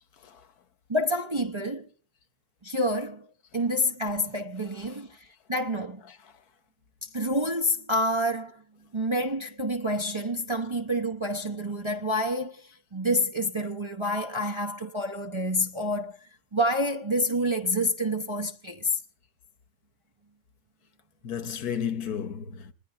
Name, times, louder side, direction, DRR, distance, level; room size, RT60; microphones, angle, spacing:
voice 1, 0.9-1.9 2.6-3.3 3.5-5.2 5.5-6.0 7.1-8.6 8.9-16.1 16.5-19.0, equal, 30° right, 0.6 m, -28 dB
voice 2, 21.2-22.7, left 8 dB, 80° left, 1.5 m, -33 dB
26.5 x 20.0 x 2.5 m
omnidirectional pair, 1.6 m